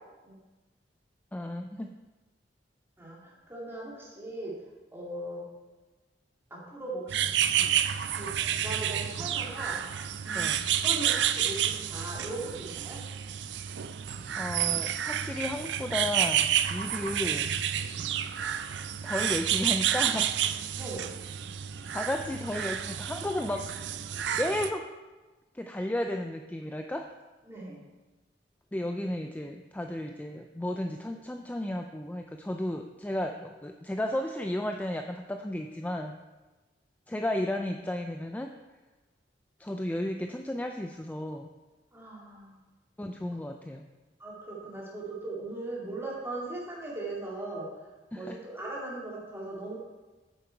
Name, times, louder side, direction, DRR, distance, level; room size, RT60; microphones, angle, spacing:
voice 1, 1.3-2.0 10.3-10.7 14.4-17.6 19.0-20.3 21.9-24.0 24.4-24.9 25.5-27.1 28.7-36.2 37.1-38.5 39.6-41.5 43.0-43.9 48.1-48.4, left 1 dB, 10° left, 5 dB, 0.3 m, -33 dB
voice 2, 3.5-4.5 4.9-5.5 6.5-7.2 7.5-7.7 8.2-8.3 8.6-9.8 10.2-10.5 10.8-13.0 20.7-21.1 27.5-27.8 41.9-42.6 44.2-47.7 48.1-49.8, right 2 dB, 15° right, -4 dB, 2.3 m, -39 dB
sound 1, 7.1-24.7, right 10 dB, 75° right, 0.4 m, -30 dB
8.6 x 6.9 x 4.5 m, 1.2 s
head